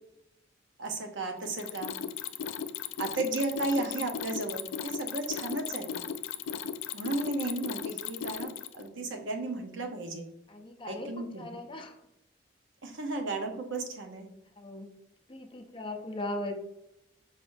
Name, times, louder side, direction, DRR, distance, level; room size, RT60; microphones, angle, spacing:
voice 1, 0.8-2.0 3.0-5.9 6.9-10.3 10.9-11.4 12.8-14.3, right 2 dB, 80° right, 4 dB, 0.8 m, -34 dB
Mechanisms, 1.4-8.9, left 8 dB, 90° left, 0.3 m, -36 dB
voice 2, 10.5-12.0 14.6-14.9 15.3-16.5, left 1 dB, 25° left, 4 dB, 0.5 m, -38 dB
4.9 x 3.8 x 2.6 m, 0.82 s
head